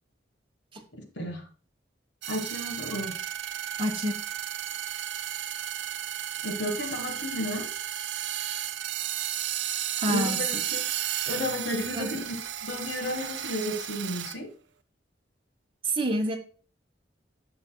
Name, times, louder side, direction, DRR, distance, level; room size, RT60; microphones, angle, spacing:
voice 1, 0.9-1.4 2.3-3.2 6.4-7.7 10.0-10.8 11.3-14.5, left 1 dB, 70° left, 5 dB, 1.6 m, -33 dB
sound 1, 2.2-14.4, right 11 dB, 75° right, 0.5 m, -33 dB
voice 2, 3.8-4.1 10.0-10.4 11.9-12.1 15.8-16.4, right 1 dB, 30° right, 3 dB, 1.3 m, -27 dB
10.5 x 6.8 x 2.3 m, 0.41 s
head